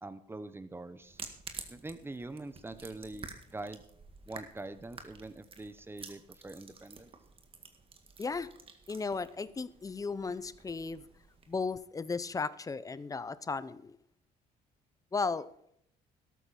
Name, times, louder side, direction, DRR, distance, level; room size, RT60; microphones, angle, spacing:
voice 1, 0.0-1.2 1.7-3.8 4.2-7.1, right 2 dB, 15° right, 12 dB, 1.1 m, -44 dB
sound 1, 1.0-11.7, right 4 dB, 35° right, 1.9 m, -51 dB
voice 2, 8.9-11.0 11.5-14.0 15.1-15.5, left 4 dB, 20° left, 16 dB, 0.7 m, -35 dB
13.0 x 13.0 x 4.3 m, 0.70 s
cardioid pair, 110°, 17 cm